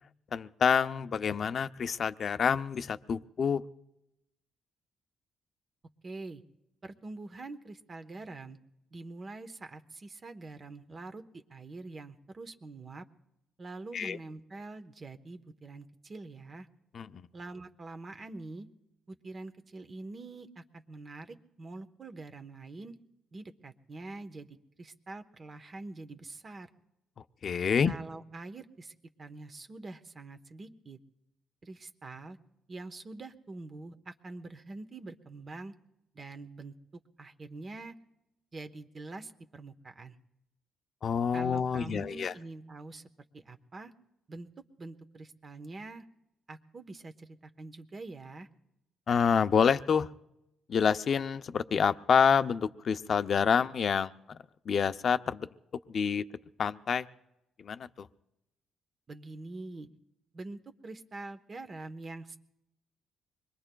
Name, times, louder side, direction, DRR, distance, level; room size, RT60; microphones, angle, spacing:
voice 1, 0.3-3.6 13.9-14.2 16.9-17.3 27.4-27.9 41.0-42.3 49.1-50.1 50.7-54.4 54.7-55.5 55.9-56.2 56.6-57.1 57.6-58.1, left 6 dB, 50° left, 11 dB, 0.6 m, -27 dB
voice 2, 6.0-6.4 6.8-8.6 8.9-13.0 13.6-16.7 17.3-18.7 19.1-22.9 23.3-26.7 27.8-31.0 31.6-32.4 32.7-35.7 36.1-37.9 38.5-40.2 41.3-43.0 43.3-43.9 44.3-44.5 44.8-46.0 46.5-48.5 59.1-59.9 60.3-62.4, right 2 dB, 35° right, 8 dB, 1.0 m, -45 dB
25.5 x 21.5 x 2.3 m, 0.88 s
cardioid pair, 90°, 0 cm